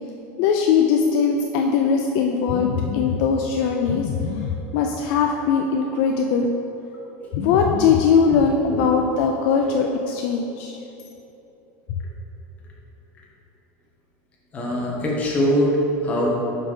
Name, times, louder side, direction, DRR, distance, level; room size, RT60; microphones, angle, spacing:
voice 1, 0.4-6.5 7.3-10.8, left 6 dB, 50° left, 2 dB, 0.4 m, -20 dB
voice 2, 14.5-16.3, equal, 20° left, -3 dB, 1.1 m, -22 dB
5.2 x 5.0 x 5.5 m, 3.0 s
supercardioid pair, 170°, 7 cm